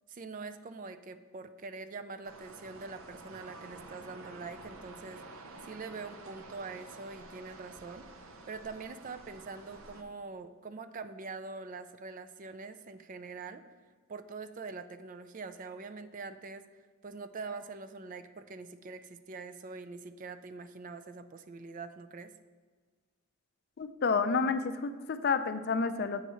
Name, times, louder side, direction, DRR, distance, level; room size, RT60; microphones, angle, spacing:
voice 1, 0.1-5.2 5.6-8.1 8.5-13.6 14.1-22.3, right 4 dB, 35° right, 11 dB, 0.4 m, -44 dB
sound 1, 2.2-10.0, right 2 dB, 70° right, 0.8 m, -50 dB
voice 2, 23.8-26.2, left 5 dB, 45° left, 10 dB, 0.4 m, -30 dB
7.9 x 4.6 x 5.5 m, 1.5 s
head